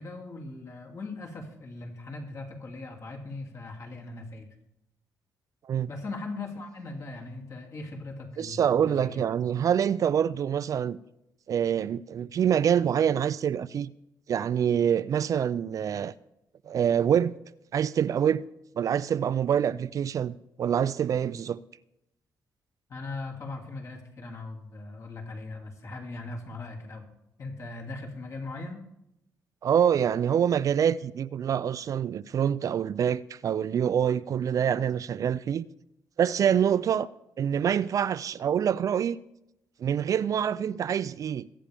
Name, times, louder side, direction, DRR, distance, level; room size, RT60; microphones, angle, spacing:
voice 1, 0.0-4.5 5.9-9.3 22.9-27.1 27.4-28.8, left 3 dB, 50° left, 2.6 m, -39 dB
voice 2, 8.4-11.0 11.5-13.9 14.3-16.1 16.7-17.3 17.7-18.4 18.8-21.6 29.6-35.6 36.2-37.1 37.4-39.2 39.8-41.5, right 8 dB, 55° right, 0.4 m, -26 dB
22.5 x 8.8 x 3.5 m
cardioid pair, 85°, 7 cm